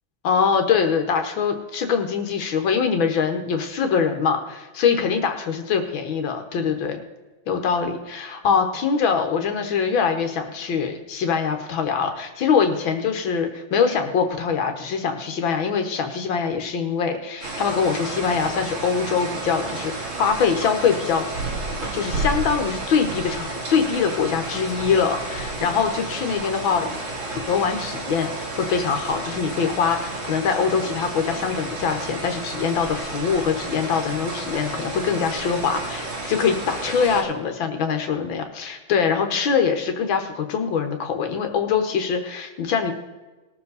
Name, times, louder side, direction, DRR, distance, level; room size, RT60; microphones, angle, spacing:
voice 1, 0.2-7.0 7.5-21.5 21.9-27.0 27.5-42.9, left 6 dB, 80° left, 6 dB, 1.9 m, -23 dB
sound 1, 17.4-37.2, right 2 dB, 80° right, 3.4 m, -31 dB
20.0 x 7.4 x 4.1 m, 1.2 s
omnidirectional pair, 2.1 m